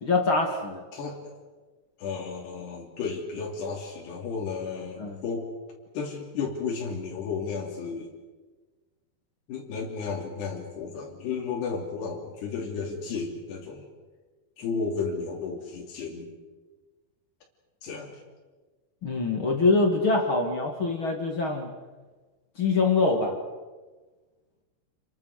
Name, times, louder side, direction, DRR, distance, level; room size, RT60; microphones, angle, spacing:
voice 1, 0.0-0.9 5.0-5.2 19.0-21.7 22.6-23.4, left 3 dB, 35° left, 3 dB, 2.6 m, -24 dB
voice 2, 0.9-1.4 2.0-5.5 5.9-8.1 9.5-13.9 14.6-16.3 17.8-18.2, left 5 dB, 80° left, -1 dB, 5.0 m, -33 dB
29.5 x 23.5 x 6.7 m, 1.3 s
omnidirectional pair, 4.7 m